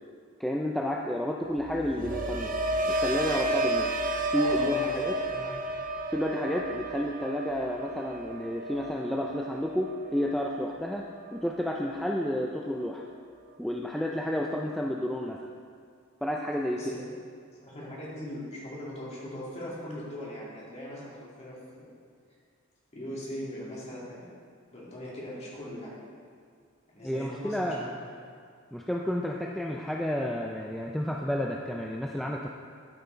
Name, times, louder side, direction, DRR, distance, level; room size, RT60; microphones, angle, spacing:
voice 1, 0.4-2.5 2.9-3.9 4.3-5.2 6.1-13.0 13.6-15.4 16.2-16.8 27.0-27.9 28.7-32.5, left 1 dB, ahead, -1 dB, 0.4 m, -31 dB
sound 1, 1.6-11.7 12.0-12.5, right 1 dB, 40° right, 0.6 m, -32 dB
voice 2, 4.3-4.9 5.3-5.5 16.7-17.0 17.6-21.9 22.9-24.3 24.7-25.9 26.9-27.9, left 1 dB, 35° left, -6 dB, 2.4 m, -40 dB
12.5 x 5.7 x 3.9 m, 2.2 s
head